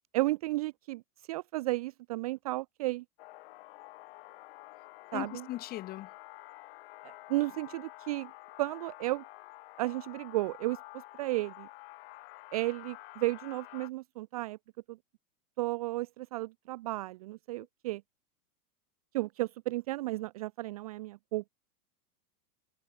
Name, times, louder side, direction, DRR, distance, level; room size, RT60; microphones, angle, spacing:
voice 1, 0.1-1.0 1.3-3.0 5.1-5.5 7.0-8.3 8.6-9.2 9.8-11.7 12.5-14.6 14.9-15.0 15.6-18.0 19.1-21.5, right 19 dB, 25° right, 0.6 m, -33 dB
sound 1, 3.2-13.9, left 20 dB, 40° left, 3.0 m, -50 dB
voice 2, 5.1-6.1, left 15 dB, 20° left, 2.6 m, -38 dB
supercardioid pair, 180°, 45 cm